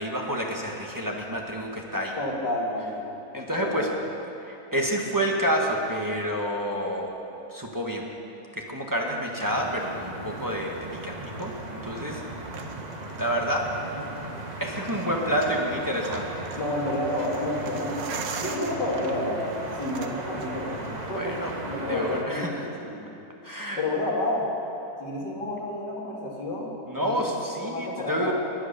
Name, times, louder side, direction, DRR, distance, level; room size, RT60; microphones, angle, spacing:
voice 1, 0.0-2.2 3.3-3.9 4.4-7.1 7.5-8.1 8.6-11.5 11.8-12.2 13.1-13.7 14.6-16.5 21.1-21.5 21.9-22.5 23.4-23.8 26.9-28.3, equal, 10° right, -1 dB, 1.2 m, -28 dB
voice 2, 2.2-3.0 3.5-3.9 16.6-21.4 21.7-23.0 23.8-24.5 25.0-27.3 27.6-28.3, left 1 dB, 70° left, -3 dB, 2.9 m, -30 dB
sound 1, 9.4-22.2, right 2 dB, 30° right, 1.1 m, -37 dB
sound 2, 10.7-21.6, right 5 dB, 60° right, 1.2 m, -42 dB
20.5 x 8.1 x 6.8 m, 3.0 s
omnidirectional pair, 1.9 m